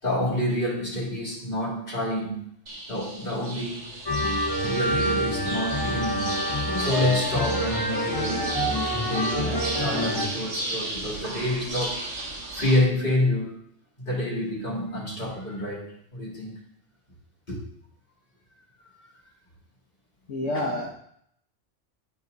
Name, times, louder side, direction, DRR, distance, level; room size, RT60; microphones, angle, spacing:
voice 1, 0.0-2.4 2.9-3.9 4.6-6.3 6.8-12.1 12.5-13.6 14.0-16.6 17.5-17.6, left 1 dB, 45° left, -5 dB, 3.3 m, -28 dB
sound 1, 2.7-12.8, right 2 dB, 85° right, 2.0 m, -34 dB
sound 2, 4.1-10.3, equal, 20° left, 0.8 m, -27 dB
voice 2, 20.3-20.9, left 1 dB, 75° left, -2 dB, 1.4 m, -28 dB
12.5 x 4.7 x 4.0 m, 0.69 s
omnidirectional pair, 1.2 m